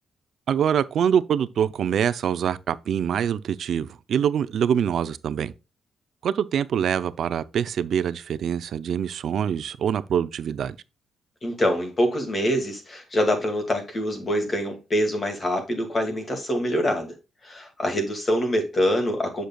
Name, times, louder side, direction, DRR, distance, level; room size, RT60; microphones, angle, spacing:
voice 1, 0.5-5.5 6.2-10.8, right 8 dB, 60° right, 0.5 m, -24 dB
voice 2, 11.4-17.1 17.4-19.4, equal, 30° left, 2.1 m, -25 dB
7.7 x 6.6 x 2.3 m
cardioid pair, 125°, 0 cm